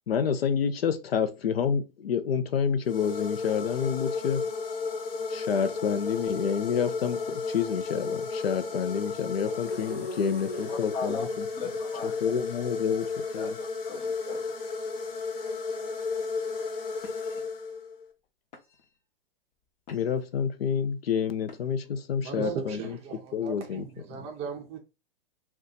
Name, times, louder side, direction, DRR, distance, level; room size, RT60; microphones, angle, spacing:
voice 1, 0.1-4.4 5.3-11.5 12.0-13.6 19.9-23.0 23.3-23.9, left 7 dB, 90° left, 0.6 m, -28 dB
sound 1, 2.8-18.0, left 4 dB, 75° left, 1.2 m, -33 dB
voice 2, 10.7-11.3 11.5-12.2 13.3-14.5, left 4 dB, 15° left, 0.7 m, -38 dB
sound 2, 16.1-16.4 17.0-17.4 18.1-18.2 18.5-19.0 19.5-20.3 21.4-21.9, left 5 dB, 45° left, 0.9 m, -51 dB
voice 3, 22.2-24.8, right 7 dB, 20° right, 0.5 m, -37 dB
2.7 x 2.3 x 3.7 m
hypercardioid pair, 135°, 29 cm